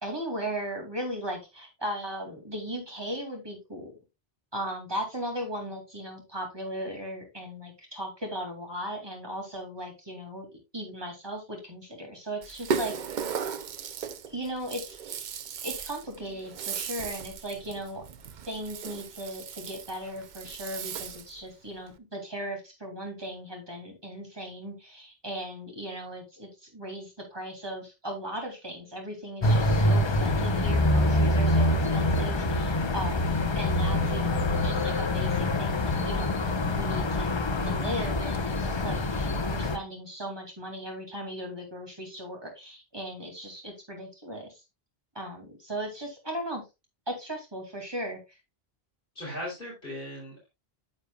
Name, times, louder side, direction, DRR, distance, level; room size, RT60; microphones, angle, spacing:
voice 1, 0.0-3.9 4.5-10.5 10.7-13.0 14.3-15.3 15.6-18.0 18.5-36.4 36.7-44.5 45.1-46.6 47.1-48.2, equal, 25° right, 1 dB, 2.4 m, -37 dB
Rattle (instrument), 12.4-21.4, right 6 dB, 55° right, 0.6 m, -36 dB
sound 1, 29.4-39.8, left 1 dB, 30° left, 0.6 m, -25 dB
voice 2, 49.2-50.5, left 1 dB, 60° left, -5 dB, 3.6 m, -38 dB
9.6 x 6.6 x 2.3 m, 0.24 s
omnidirectional pair, 1.0 m